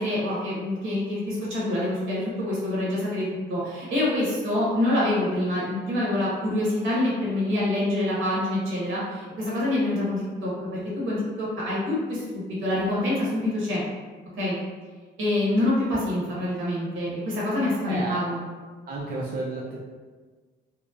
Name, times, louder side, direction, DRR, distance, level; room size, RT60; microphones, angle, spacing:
voice 1, 0.0-13.8 14.4-14.6 15.2-18.4, left 1 dB, 80° right, -6 dB, 1.0 m, -26 dB
voice 2, 17.8-18.2 18.9-19.8, right 2 dB, 50° right, -4 dB, 0.4 m, -31 dB
2.9 x 2.0 x 2.3 m, 1.4 s
cardioid pair, 90°, 20 cm